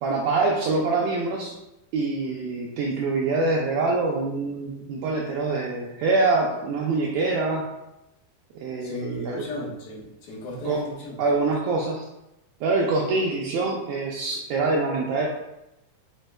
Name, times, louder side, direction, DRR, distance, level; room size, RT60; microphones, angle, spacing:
voice 1, 0.0-1.5 1.9-7.6 8.6-9.4 10.6-10.8 11.2-12.1 12.6-15.3, right 3 dB, 85° right, -2 dB, 1.5 m, -25 dB
voice 2, 8.8-11.2, left 1 dB, 65° left, -5 dB, 1.0 m, -36 dB
5.2 x 4.1 x 2.2 m, 0.90 s
omnidirectional pair, 3.7 m